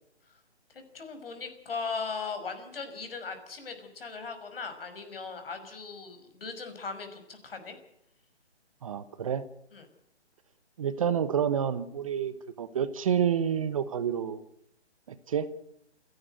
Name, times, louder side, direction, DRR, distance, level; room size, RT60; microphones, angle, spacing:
voice 1, 0.7-7.8 9.7-9.9, left 4 dB, 55° left, 7 dB, 5.9 m, -38 dB
voice 2, 8.8-9.5 10.8-14.4 15.3-15.5, right 8 dB, 30° right, 13 dB, 1.1 m, -29 dB
28.5 x 11.0 x 9.2 m, 0.79 s
figure-of-eight pair, 150°, 34 cm